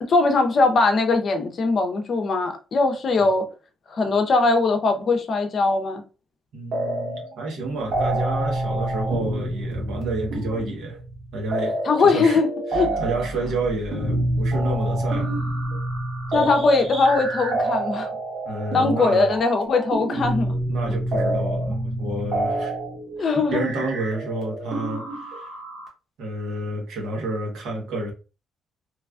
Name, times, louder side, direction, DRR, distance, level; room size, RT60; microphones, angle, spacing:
voice 1, 0.1-3.4 3.9-6.0 11.8-12.5 12.7-12.9 16.3-18.1 18.7-20.5 23.2-23.6, left 3 dB, 50° left, 0.6 m, -20 dB
voice 2, 6.5-11.0 11.3-12.4 12.7-15.4 16.4-16.5 18.4-19.3 20.7-22.8 23.2-25.5 26.2-28.1, right 2 dB, 80° right, 1.0 m, -30 dB
sound 1, 6.7-7.3 7.6-25.9, right 1 dB, 55° right, 1.2 m, -27 dB
3.1 x 2.3 x 2.4 m
cardioid pair, 90°, 0 cm